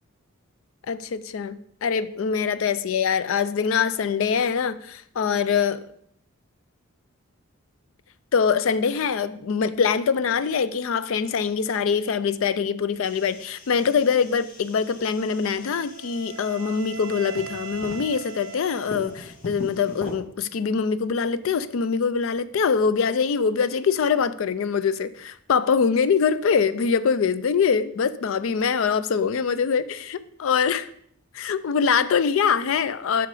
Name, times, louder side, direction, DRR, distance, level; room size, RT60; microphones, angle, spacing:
voice 1, 0.9-5.9 8.3-30.9 31.3-33.3, left 6 dB, 65° left, 0.4 m, -23 dB
sound 1, 13.0-20.2, left 2 dB, 40° left, 1.3 m, -41 dB
Wind instrument woodwind instrument, 15.3-19.5, right 7 dB, 50° right, 0.5 m, -41 dB
7.4 x 5.8 x 4.8 m
head